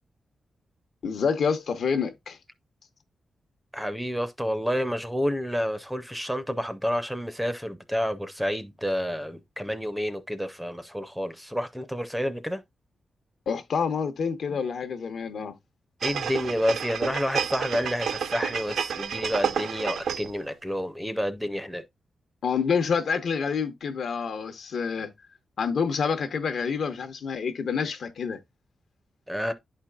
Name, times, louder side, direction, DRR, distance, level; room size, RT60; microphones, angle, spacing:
voice 1, 1.0-2.4 13.5-15.5 22.4-25.1 25.6-28.4, left 6 dB, 65° left, 0.8 m, -27 dB
voice 2, 3.7-12.6 16.0-21.8 29.3-29.5, equal, ahead, 0.5 m, -29 dB
sound 1, 16.0-20.4 20.8-20.9, right 7 dB, 85° right, 0.6 m, -30 dB
11.5 x 4.4 x 2.3 m
wide cardioid pair, 175°, 0 cm